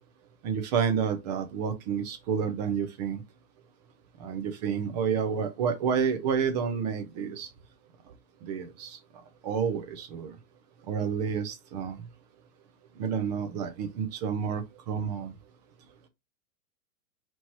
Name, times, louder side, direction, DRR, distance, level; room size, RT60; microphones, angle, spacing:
voice 1, 0.4-3.2 4.2-7.5 8.4-9.0 9.4-10.3 10.9-12.0 13.0-15.3, right 7 dB, 30° right, 0.5 m, -29 dB
4.2 x 3.0 x 3.0 m
hypercardioid pair, 145°, 42 cm